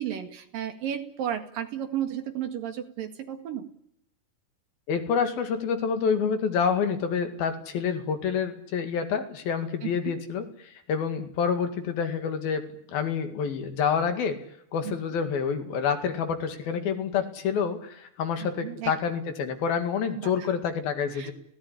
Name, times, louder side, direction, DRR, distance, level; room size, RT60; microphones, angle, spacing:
voice 1, 0.0-3.6 9.8-10.1 14.8-14.9 18.4-18.9 20.2-20.5 21.1-21.3, right 10 dB, 60° right, 7 dB, 3.4 m, -33 dB
voice 2, 4.9-14.4 14.7-21.3, left 6 dB, 65° left, 7 dB, 3.9 m, -28 dB
24.0 x 18.0 x 9.9 m, 0.77 s
omnidirectional pair, 4.7 m